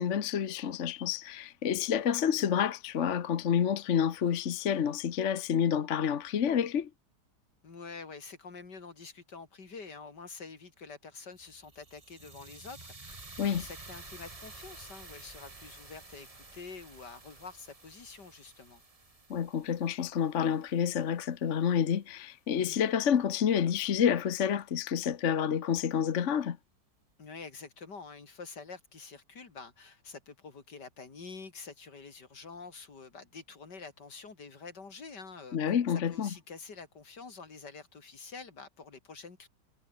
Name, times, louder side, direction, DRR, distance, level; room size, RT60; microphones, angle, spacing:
voice 1, 0.0-6.9 13.4-13.7 19.3-26.6 35.5-36.3, left 8 dB, 50° left, 1.2 m, -29 dB
voice 2, 7.6-13.2 13.5-18.8 22.6-22.8 27.2-35.7 36.1-39.5, left 4 dB, 75° left, 3.6 m, -47 dB
sound 1, 11.4-21.5, right 3 dB, 20° right, 1.7 m, -51 dB
omnidirectional pair, 1.9 m